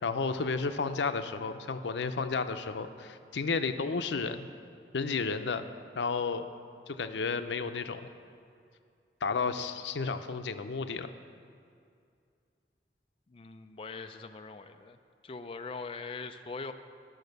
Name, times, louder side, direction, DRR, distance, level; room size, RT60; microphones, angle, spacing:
voice 1, 0.0-4.5 4.9-5.7 6.0-6.5 6.9-8.1 9.2-11.1, left 4 dB, 90° left, 9 dB, 0.6 m, -32 dB
voice 2, 13.3-15.0 15.2-16.7, left 4 dB, 30° left, 7 dB, 0.4 m, -42 dB
12.5 x 6.5 x 6.6 m, 2.3 s
head